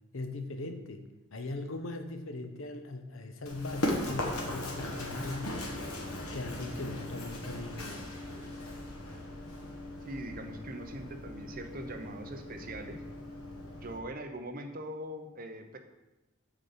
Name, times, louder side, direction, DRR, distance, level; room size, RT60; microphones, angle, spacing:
voice 1, 0.1-5.5 6.3-8.1, left 2 dB, 65° left, 7 dB, 0.8 m, -40 dB
Run, 3.5-14.0, left 1 dB, 85° left, 1.3 m, -38 dB
voice 2, 10.1-13.0 13.8-15.8, right 1 dB, 40° right, 6 dB, 0.8 m, -42 dB
8.1 x 4.0 x 6.9 m, 1.0 s
head